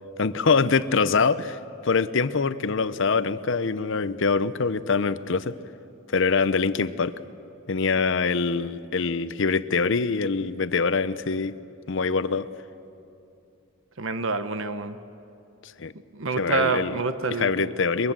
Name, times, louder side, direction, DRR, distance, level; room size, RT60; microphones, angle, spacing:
voice 1, 0.2-5.6 6.1-7.1 7.7-11.5 11.9-12.5 15.6-15.9 16.4-17.0 17.4-18.1, left 4 dB, 60° left, 14 dB, 0.7 m, -24 dB
voice 2, 14.0-15.0 16.1-17.7, right 3 dB, 65° right, 10 dB, 0.9 m, -27 dB
23.5 x 22.0 x 7.4 m, 2.8 s
head